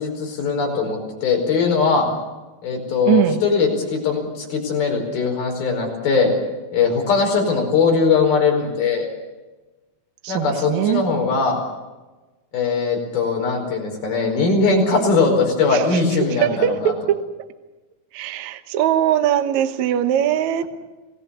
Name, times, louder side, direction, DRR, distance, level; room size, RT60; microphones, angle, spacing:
voice 1, 0.0-2.1 2.6-6.3 6.7-9.1 10.3-11.6 12.5-16.9, left 4 dB, 75° left, 2 dB, 6.8 m, -20 dB
voice 2, 3.1-3.4 10.2-11.1 15.7-16.0 16.3-17.2 18.1-20.6, right 11 dB, 65° right, 9 dB, 2.0 m, -21 dB
28.5 x 18.5 x 7.2 m, 1.2 s
omnidirectional pair, 4.4 m